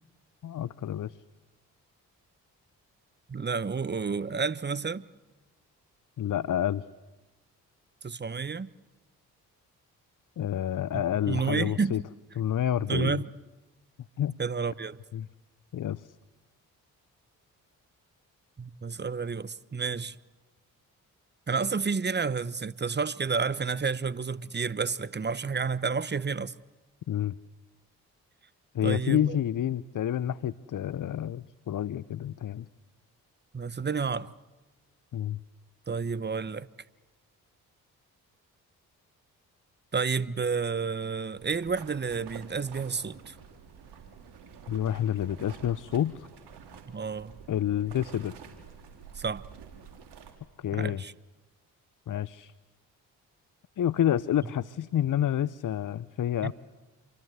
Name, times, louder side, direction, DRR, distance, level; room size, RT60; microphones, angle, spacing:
voice 1, 0.4-1.2 6.2-6.8 10.4-12.0 12.4-13.2 14.2-14.4 15.1-15.3 15.7-16.1 27.1-27.3 28.7-32.7 35.1-35.4 44.7-46.3 47.5-48.3 50.6-51.0 52.1-52.5 53.8-56.5, left 10 dB, 50° left, 0.8 m, -29 dB
voice 2, 3.3-5.0 8.0-8.7 10.9-12.0 12.9-13.3 14.4-15.0 18.6-20.2 21.5-26.5 28.8-29.4 33.5-34.3 35.9-36.7 39.9-43.4 46.8-47.3 49.1-49.4 50.7-51.1 56.4-56.5, right 5 dB, 25° right, 1.0 m, -30 dB
sound 1, 41.4-50.3, right 7 dB, 70° right, 3.8 m, -49 dB
27.5 x 24.0 x 8.2 m
hypercardioid pair, 40°, 42 cm